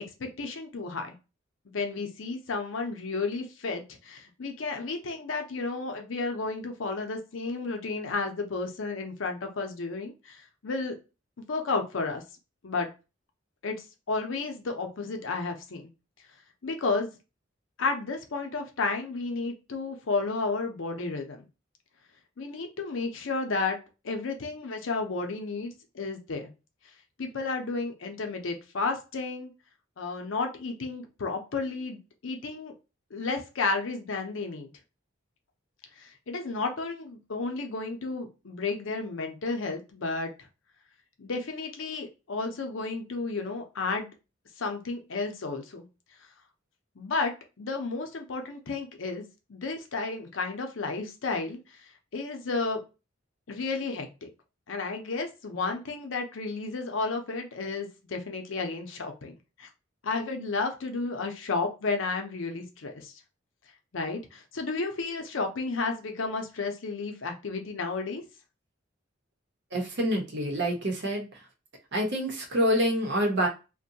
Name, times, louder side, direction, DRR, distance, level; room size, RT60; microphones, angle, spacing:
voice 1, 0.2-1.1 1.7-10.9 11.5-12.2 12.6-12.9 13.6-13.8 14.1-15.9 16.6-17.1 17.8-21.5 22.4-23.8 24.0-26.5 27.2-29.5 30.0-32.7 33.1-34.7 36.0-40.5 41.2-44.1 44.6-45.9 47.0-49.2 49.5-51.6 52.1-52.8 53.5-54.3 54.7-59.3 59.6-59.7 60.0-63.1 63.9-68.2, left 3 dB, 75° left, 4 dB, 0.6 m, -32 dB
voice 2, 69.7-71.4 71.9-73.5, equal, 60° right, 1 dB, 0.8 m, -27 dB
2.6 x 2.2 x 2.7 m, 0.29 s
head